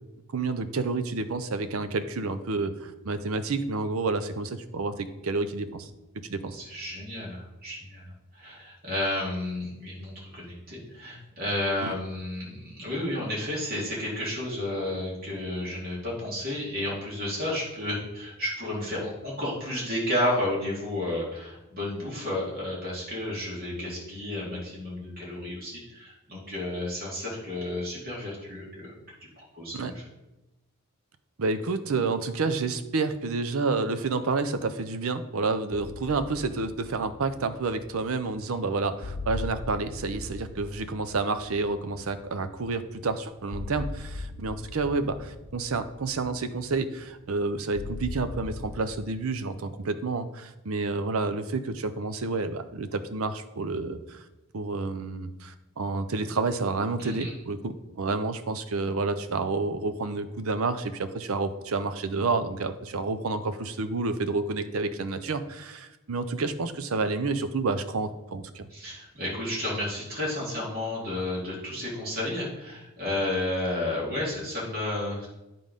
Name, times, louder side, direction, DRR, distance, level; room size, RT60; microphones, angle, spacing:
voice 1, 0.3-5.9 6.3-6.6 11.8-11.9 29.7-29.9 31.4-54.2 54.5-68.7, right 3 dB, 80° right, 11 dB, 0.6 m, -29 dB
voice 2, 6.5-28.9 29.4-29.9 57.0-57.3 68.7-75.3, left 1 dB, 45° right, -5 dB, 2.6 m, -32 dB
sound 1, 35.7-48.9, left 3 dB, 60° left, 0.5 m, -40 dB
9.5 x 3.8 x 5.2 m, 1.0 s
head